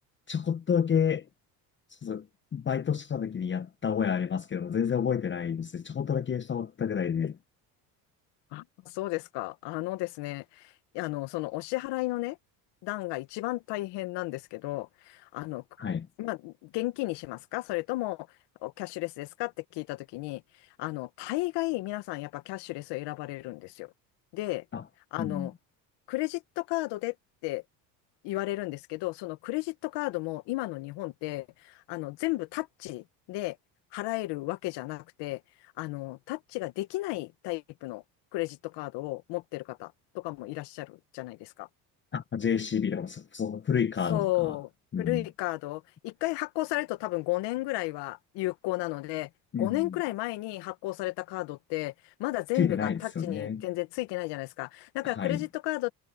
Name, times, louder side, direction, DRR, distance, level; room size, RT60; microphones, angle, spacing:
voice 1, 0.3-1.2 1.9-2.3 2.5-7.4 15.8-16.1 24.7-24.8 25.2-25.5 42.1-44.6 44.9-45.2 49.5-50.0 52.5-53.6 55.0-55.4, left 7 dB, 30° left, 0.8 m, -29 dB
voice 2, 8.5-12.4 12.8-15.6 16.2-18.3 18.6-20.4 20.8-23.9 24.3-24.6 25.1-25.5 26.1-27.1 27.4-27.6 28.2-33.6 33.9-35.4 35.8-38.0 38.3-41.7 44.1-44.7 45.0-49.3 49.6-51.9 52.2-55.9, left 20 dB, 75° left, 1.5 m, -33 dB
supercardioid pair, 95°, 41 cm